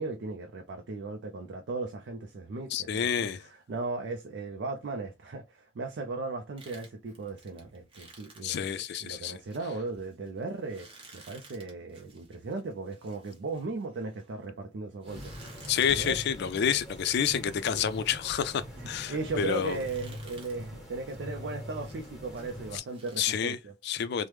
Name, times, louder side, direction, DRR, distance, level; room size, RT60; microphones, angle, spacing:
voice 1, 0.0-3.3 3.7-15.5 15.9-16.2 18.9-23.7, right 3 dB, 60° right, 0.4 m, -37 dB
voice 2, 2.7-3.4 8.4-9.4 15.7-19.8 22.7-22.8 23.2-23.6 23.8-24.3, left 8 dB, 60° left, 0.3 m, -29 dB
sound 1, 6.6-14.5 15.0-23.2, right 3 dB, 30° right, 1.0 m, -55 dB
sound 2, 15.1-22.8, equal, ahead, 1.4 m, -43 dB
3.1 x 2.1 x 3.2 m
head